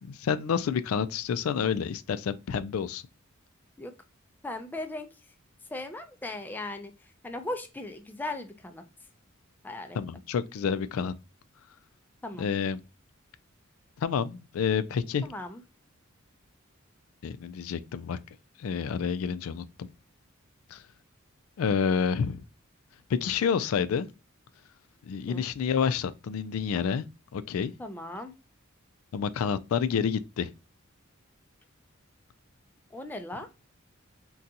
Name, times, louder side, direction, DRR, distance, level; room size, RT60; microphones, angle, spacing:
voice 1, 0.0-3.0 9.9-11.1 12.4-12.8 14.0-15.3 17.2-18.2 18.6-19.6 20.7-20.8 21.6-22.4 23.1-24.1 25.1-27.1 27.3-27.7 29.1-30.5, left 6 dB, 85° left, 0.3 m, -29 dB
voice 2, 4.4-5.1 5.7-8.8 9.6-10.0 12.2-12.5 15.2-15.6 25.3-25.4 27.8-28.3 32.9-33.5, left 2 dB, 10° left, 0.4 m, -38 dB
3.8 x 2.3 x 2.7 m
head